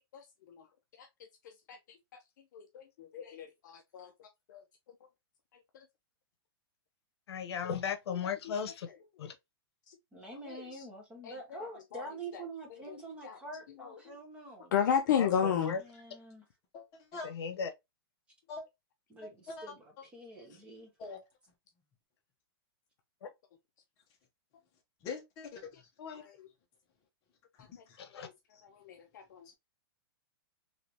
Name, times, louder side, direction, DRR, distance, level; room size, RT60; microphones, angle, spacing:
voice 1, 0.1-0.6 1.0-1.1 1.7-1.8 2.5-4.6 5.7-5.8 8.1-8.2 9.9-10.0 10.5-10.6 11.2-11.6 11.9-12.0 13.2-13.4 14.7-15.8 26.2-26.5 28.2-28.3 28.6-29.5, left 8 dB, 45° left, 0.5 m, -33 dB
voice 2, 7.3-8.9 9.2-9.3 15.2-15.8 17.2-17.7 23.2-23.3 26.0-26.2 28.0-28.3, left 6 dB, 85° left, 0.7 m, -36 dB
voice 3, 10.1-14.7 15.8-16.4 19.1-20.9, right 2 dB, 10° right, 0.7 m, -46 dB
voice 4, 16.7-17.3 18.5-18.6 19.2-19.7 21.0-21.2 25.0-25.8 27.6-28.0, left 4 dB, 25° left, 0.8 m, -44 dB
3.3 x 3.0 x 2.7 m
supercardioid pair, 175°, 13 cm